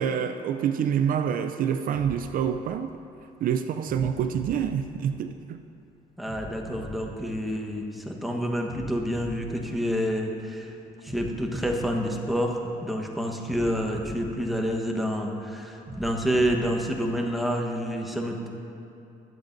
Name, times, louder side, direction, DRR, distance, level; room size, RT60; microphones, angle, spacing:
voice 1, 0.0-2.9 3.4-5.6, right 8 dB, 55° right, 9 dB, 0.4 m, -27 dB
sound 1, 1.9-3.2 3.8-5.6 6.2-8.0 8.6-10.4 11.0-12.8 13.4-15.2 15.8-17.2, right 1 dB, 15° right, 2.8 m, -43 dB
voice 2, 6.2-10.7 11.0-18.5, equal, ahead, 1 dB, 1.2 m, -28 dB
21.0 x 7.9 x 2.6 m, 2.7 s
cardioid pair, 110°, 17 cm